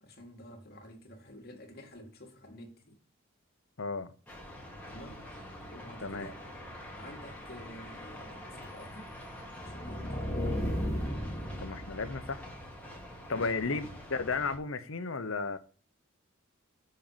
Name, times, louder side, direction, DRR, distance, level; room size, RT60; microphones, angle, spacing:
voice 1, 0.0-3.0 4.9-5.3 5.7-6.4 6.9-9.2 9.6-10.7 13.4-13.6, equal, 50° left, 2.3 m, -49 dB
voice 2, 3.8-4.1 6.0-6.3 11.6-12.4 13.3-15.6, left 4 dB, 70° left, 0.9 m, -34 dB
sound 1, 4.3-14.6, left 1 dB, 5° left, 2.3 m, -46 dB
sound 2, 9.5-12.5, equal, 30° left, 2.1 m, -34 dB
7.6 x 5.4 x 7.4 m
head